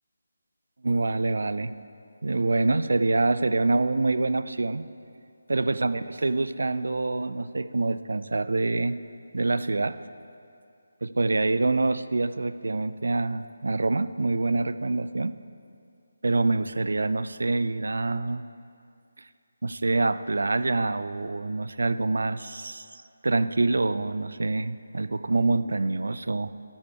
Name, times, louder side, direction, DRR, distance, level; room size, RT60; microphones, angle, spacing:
voice 1, 0.8-1.7 2.2-4.9 5.5-9.0 9.3-10.1 11.0-15.4 16.2-18.4 19.6-26.5, right 2 dB, 65° right, 13 dB, 0.5 m, -26 dB
13.0 x 8.9 x 4.7 m, 2.4 s
figure-of-eight pair, 155°, 0 cm